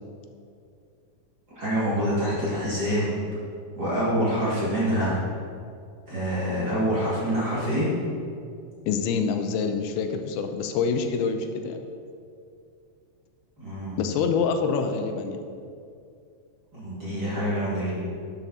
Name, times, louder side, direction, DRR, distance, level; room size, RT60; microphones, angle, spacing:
voice 1, 1.6-3.2 3.7-5.2 6.1-7.9 13.6-14.0 16.7-17.9, equal, 30° right, -10 dB, 2.5 m, -26 dB
voice 2, 8.9-11.8 14.0-15.4, left 5 dB, 85° left, 6 dB, 2.6 m, -26 dB
11.0 x 7.6 x 4.2 m, 2.4 s
omnidirectional pair, 4.4 m